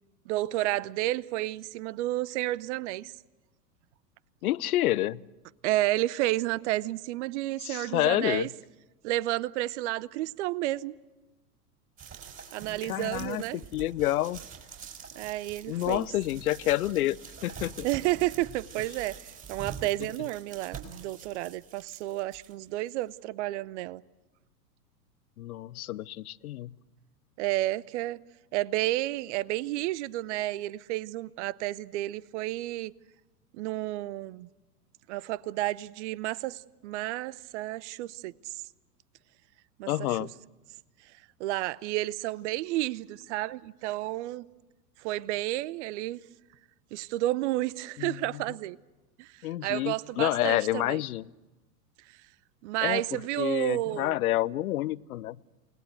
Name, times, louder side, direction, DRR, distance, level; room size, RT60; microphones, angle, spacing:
voice 1, 0.3-3.1 5.6-8.5 9.0-10.9 12.5-13.6 15.2-16.1 17.8-24.0 27.4-28.2 28.5-32.9 33.5-34.5 35.1-38.5 39.8-39.9 41.4-44.4 45.0-46.2 46.9-48.8 49.2-51.0 52.6-54.2, right 17 dB, 45° right, 0.7 m, -31 dB
voice 2, 4.4-5.2 7.6-8.5 12.8-14.4 15.7-17.2 17.4-17.9 25.4-26.7 39.9-40.3 48.0-48.4 49.4-51.2 52.8-53.0 53.4-55.4, left 15 dB, 60° left, 0.8 m, -28 dB
sound 1, 12.0-22.5 23.0-23.1, right 7 dB, 25° right, 5.0 m, -45 dB
29.0 x 19.0 x 8.0 m
figure-of-eight pair, 100°, 48 cm